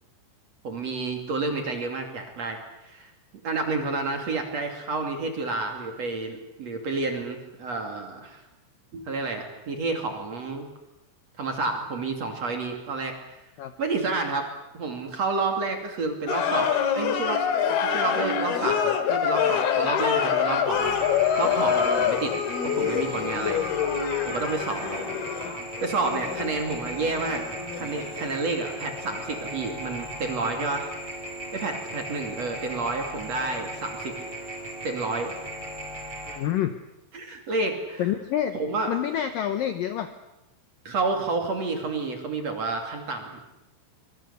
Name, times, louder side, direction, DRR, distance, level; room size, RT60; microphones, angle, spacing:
voice 1, 0.6-2.6 2.8-3.1 3.4-8.4 8.9-10.7 11.4-13.2 13.8-14.5 14.7-22.3 22.6-23.6 24.3-25.1 25.8-27.4 27.7-30.9 31.5-34.2 34.8-35.3 37.1-38.0 38.5-38.9 40.8-43.4, right 3 dB, 40° right, 4 dB, 3.0 m, -30 dB
sound 1, 16.3-29.7 29.9-30.1, left 8 dB, 60° left, 3.5 m, -26 dB
sound 2, 20.7-36.4, right 1 dB, 5° right, 5.3 m, -37 dB
voice 2, 36.3-36.7 38.0-38.6 38.9-40.1, left 11 dB, 85° left, 9 dB, 1.9 m, -27 dB
25.5 x 22.0 x 8.2 m, 0.89 s
omnidirectional pair, 5.6 m